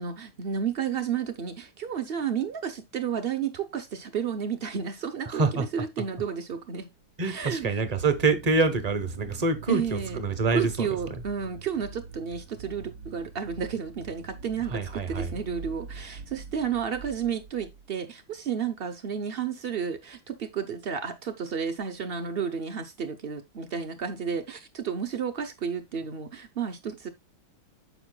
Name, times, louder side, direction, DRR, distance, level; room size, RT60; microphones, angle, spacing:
voice 1, 0.0-6.9 7.2-7.8 9.7-10.2 10.5-27.1, right 7 dB, 90° right, 0.5 m, -32 dB
voice 2, 5.3-5.7 7.2-11.1 14.7-15.3, right 3 dB, 30° right, 0.7 m, -26 dB
sound 1, 7.3-17.9, right 6 dB, 60° right, 1.1 m, -43 dB
9.1 x 6.7 x 2.2 m
omnidirectional pair, 2.2 m